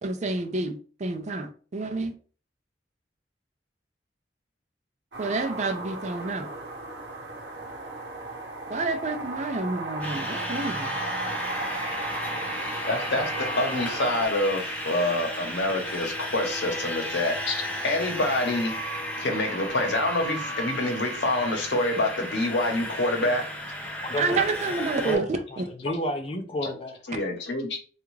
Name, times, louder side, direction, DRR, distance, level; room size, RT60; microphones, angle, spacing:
voice 1, 0.0-2.1 5.2-6.5 8.7-10.9 24.2-25.2 25.6-25.7, right 3 dB, 40° right, 0.5 m, -29 dB
sound 1, 5.1-14.3, right 2 dB, 80° right, 0.8 m, -35 dB
sound 2, 10.0-25.2, equal, 10° left, 0.9 m, -34 dB
voice 2, 12.9-17.6 17.8-18.7 19.2-23.4 26.6-26.7 27.1-27.8, left 2 dB, 75° left, 0.9 m, -26 dB
voice 3, 24.1-24.5 24.9-27.0, equal, 35° left, 0.5 m, -31 dB
3.4 x 2.4 x 3.1 m
head